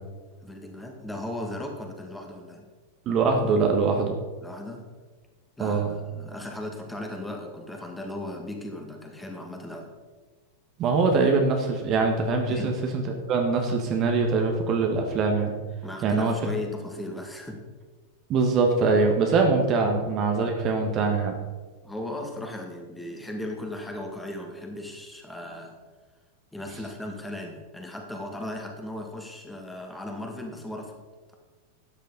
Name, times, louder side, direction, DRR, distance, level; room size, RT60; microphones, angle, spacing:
voice 1, 0.4-2.7 4.4-4.8 5.6-9.9 12.5-12.7 15.8-17.6 19.8-19.9 21.8-25.7 26.5-30.9, left 1 dB, 5° left, 2 dB, 2.0 m, -37 dB
voice 2, 3.0-4.2 5.6-5.9 10.8-15.5 16.0-16.3 18.3-21.3, right 4 dB, 35° right, 3 dB, 1.5 m, -23 dB
12.5 x 9.3 x 4.1 m, 1.3 s
figure-of-eight pair, 90°, 0 cm